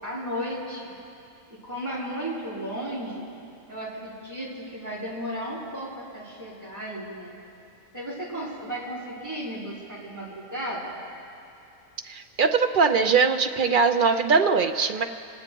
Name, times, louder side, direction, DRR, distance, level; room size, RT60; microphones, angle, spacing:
voice 1, 0.0-0.9 1.5-3.3 3.7-7.4 7.9-11.0, equal, 10° right, -9 dB, 3.9 m, -34 dB
voice 2, 12.1-15.0, right 5 dB, 55° right, 7 dB, 0.6 m, -21 dB
27.0 x 9.6 x 4.5 m, 2.5 s
omnidirectional pair, 1.4 m